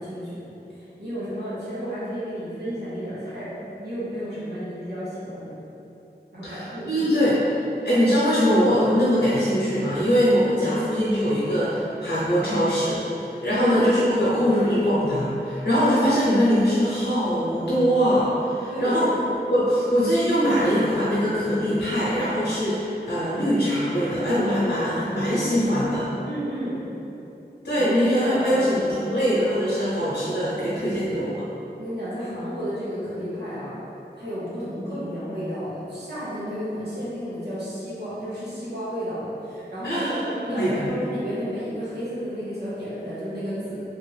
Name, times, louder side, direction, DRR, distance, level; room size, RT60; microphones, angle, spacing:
voice 1, 0.0-5.6 6.3-7.0 13.4-14.2 18.7-19.1 26.2-26.8 27.8-28.9 31.8-33.8 34.2-43.8, equal, 75° right, -11 dB, 0.9 m, -32 dB
voice 2, 6.4-7.4 7.8-13.0 13.4-19.1 19.5-26.1 27.6-31.3 39.8-40.2 40.5-40.9, equal, 85° left, -11 dB, 0.8 m, -22 dB
3.0 x 2.5 x 3.1 m, 2.9 s
wide cardioid pair, 45°, 18 cm